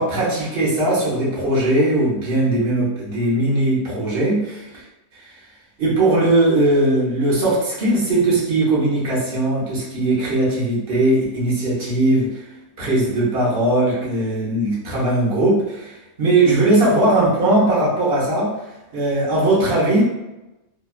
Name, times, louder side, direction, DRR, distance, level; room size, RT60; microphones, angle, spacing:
voice 1, 0.0-4.8 5.1-5.3 5.8-12.4 12.8-18.5 18.9-20.0, right 1 dB, 50° right, -6 dB, 0.9 m, -19 dB
2.9 x 2.3 x 2.3 m, 0.99 s
omnidirectional pair, 1.5 m